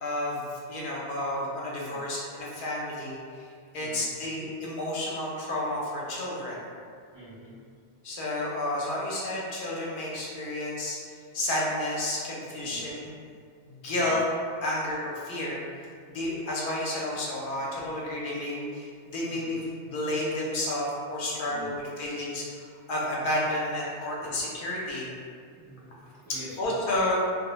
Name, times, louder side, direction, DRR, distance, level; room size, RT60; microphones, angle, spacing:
voice 1, 0.0-3.5 3.7-6.6 8.0-11.0 11.3-13.1 13.7-14.2 14.6-15.6 16.1-25.1 26.6-27.1, left 1 dB, 60° left, -4 dB, 0.6 m, -31 dB
voice 2, 7.1-7.6 12.6-12.9 14.0-14.2 19.3-19.5 21.5-21.8 25.6-26.7, right 1 dB, 45° right, -11 dB, 0.3 m, -47 dB
2.1 x 2.0 x 3.0 m, 2.2 s
omnidirectional pair, 1.3 m